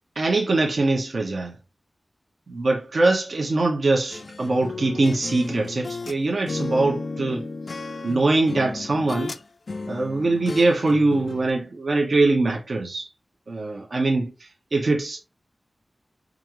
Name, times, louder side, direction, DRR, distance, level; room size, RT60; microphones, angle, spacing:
voice 1, 0.2-1.5 2.5-7.5 8.0-9.3 9.9-13.1 13.5-15.2, right 2 dB, 65° right, 0.8 m, -22 dB
sound 1, 4.1-6.2 6.5-9.4 9.7-11.5, left 3 dB, 65° left, 0.3 m, -34 dB
5.0 x 2.4 x 2.9 m
wide cardioid pair, 100°, 0 cm